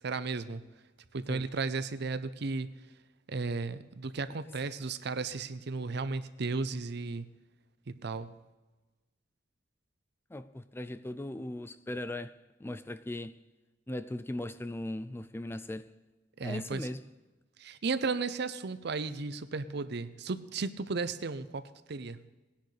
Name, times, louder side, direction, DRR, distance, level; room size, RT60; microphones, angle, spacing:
voice 1, 0.0-0.6 1.1-2.7 3.3-7.3 7.9-8.3 16.4-16.9 17.6-22.2, right 4 dB, 60° right, 0.6 m, -34 dB
voice 2, 10.3-13.4 13.9-15.9 16.4-17.0, left 1 dB, 15° left, 0.4 m, -38 dB
19.5 x 10.5 x 3.3 m
head